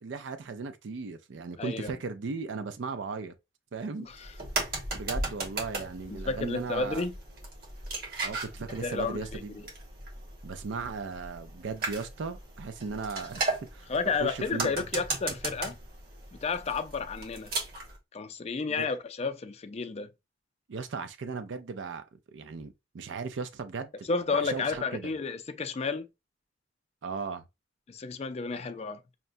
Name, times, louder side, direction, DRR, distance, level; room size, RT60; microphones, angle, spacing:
voice 1, 0.0-3.3 3.7-4.1 4.9-7.1 8.2-9.7 10.4-13.4 13.7-13.9 14.2-14.7 18.7-18.9 20.7-22.0 22.3-23.9 24.3-25.1 27.0-27.4 28.5-28.6, right 4 dB, 90° right, 0.4 m, -37 dB
voice 2, 1.6-1.9 4.0-4.3 6.1-7.2 8.8-9.6 13.9-15.8 16.3-17.5 18.1-20.1 24.1-26.1 27.9-29.0, left 4 dB, 35° left, 0.4 m, -32 dB
sound 1, 4.1-18.0, right 2 dB, 55° right, 1.2 m, -37 dB
5.7 x 2.2 x 2.5 m
head